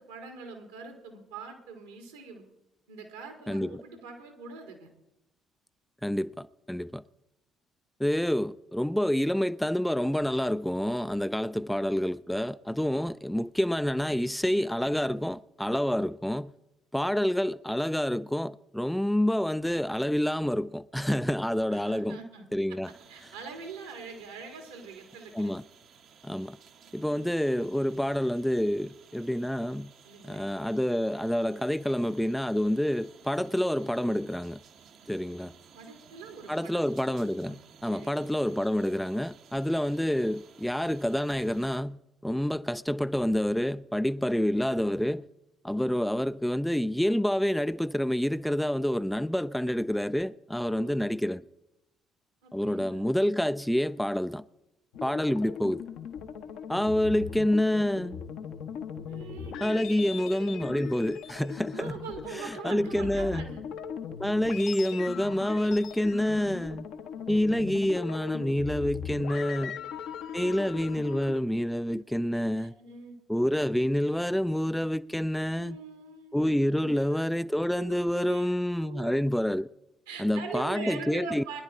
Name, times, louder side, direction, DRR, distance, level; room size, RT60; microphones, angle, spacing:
voice 1, 0.0-2.4 2.9-4.9 21.7-22.8 23.1-25.5 30.0-30.5 35.7-36.9 37.4-37.6 37.9-38.3 50.7-51.0 52.4-53.1 59.1-60.1 61.7-63.6 69.6-69.9 70.5-70.6 72.3-73.2 75.6-77.2 77.7-79.2 80.1-81.6, right 5 dB, 80° right, 2.0 m, -43 dB
voice 2, 3.5-3.8 6.0-7.0 8.0-16.5 16.9-22.2 22.5-22.9 25.3-25.6 26.2-26.6 26.9-29.9 30.2-34.6 35.1-35.5 36.5-45.2 45.6-51.5 52.5-54.4 55.0-55.8 56.7-58.2 59.6-61.9 62.4-63.5 64.2-66.9 67.3-69.8 70.3-72.7 73.3-75.8 76.3-79.7 80.2-81.4, equal, 5° left, 0.4 m, -28 dB
sound 1, 22.8-41.8, right 7 dB, 55° right, 1.0 m, -56 dB
sound 2, 54.9-71.4, left 7 dB, 65° left, 0.9 m, -39 dB
22.0 x 10.5 x 3.6 m
figure-of-eight pair, 50°, 0 cm